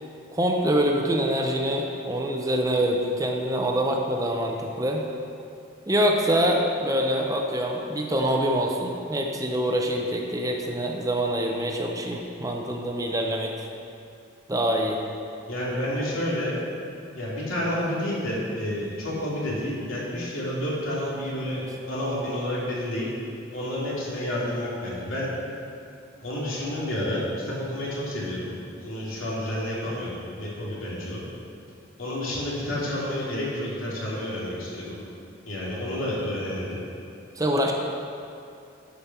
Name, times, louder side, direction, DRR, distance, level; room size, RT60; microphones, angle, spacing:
voice 1, 0.3-5.0 5.9-13.5 14.5-15.0 37.4-37.7, equal, 15° right, 1 dB, 0.7 m, -25 dB
voice 2, 15.5-16.6 17.1-23.1 23.5-25.3 26.2-31.2 32.0-35.0 35.5-36.8, left 1 dB, 85° left, -6 dB, 2.6 m, -30 dB
11.0 x 5.2 x 5.9 m, 2.5 s
head